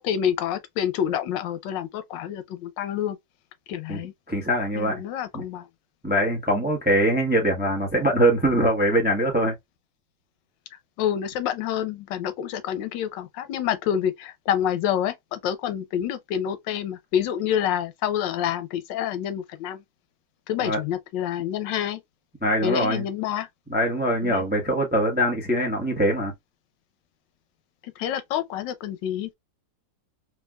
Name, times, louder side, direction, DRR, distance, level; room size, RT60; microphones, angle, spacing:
voice 1, 0.0-3.2 3.7-4.1 4.7-5.7 10.7-19.8 20.5-22.0 22.6-23.5 24.2-24.4 27.8-29.3, left 10 dB, 90° left, 1.3 m, -28 dB
voice 2, 4.3-5.0 5.3-5.4 6.0-9.5 20.6-20.8 22.4-23.0 23.7-26.3, right 1 dB, 10° right, 0.4 m, -22 dB
3.5 x 2.7 x 2.2 m
omnidirectional pair, 1.9 m